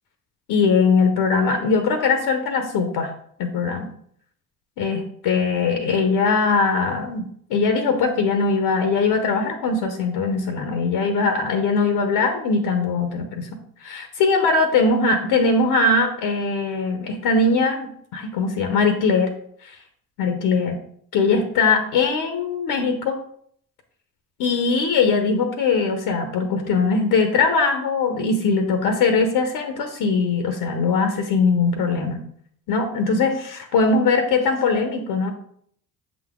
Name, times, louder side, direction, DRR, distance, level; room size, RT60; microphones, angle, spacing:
voice 1, 0.5-3.1 3.4-3.9 4.8-13.5 13.8-19.3 19.6-19.7 20.2-20.8 21.1-23.2 24.4-32.2 32.7-35.3, left 4 dB, 65° left, 6 dB, 1.0 m, -21 dB
7.2 x 4.0 x 3.6 m, 0.65 s
hypercardioid pair, 60°, 42 cm